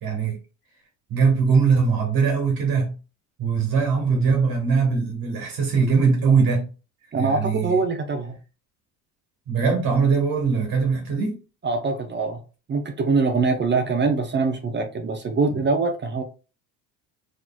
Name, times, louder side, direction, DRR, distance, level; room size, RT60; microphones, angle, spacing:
voice 1, 0.0-0.4 1.1-3.0 3.4-6.7 7.2-7.8 9.5-11.4 15.5-15.6, right 5 dB, 60° right, 1.4 m, -21 dB
voice 2, 7.1-8.4 11.6-12.4 12.7-16.2, right 4 dB, 30° right, 0.5 m, -23 dB
3.9 x 3.1 x 2.3 m
cardioid pair, 105°, 39 cm